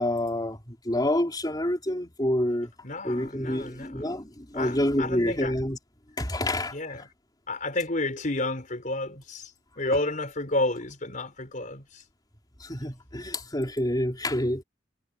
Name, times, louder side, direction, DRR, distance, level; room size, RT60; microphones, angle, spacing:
voice 1, 0.0-2.7 3.0-5.8 6.2-6.8 12.6-14.6, left 1 dB, 20° left, 4.1 m, -28 dB
voice 2, 2.8-4.1 4.6-5.5 6.7-7.1 7.5-9.5 9.8-11.8, left 2 dB, 45° left, 4.5 m, -30 dB
head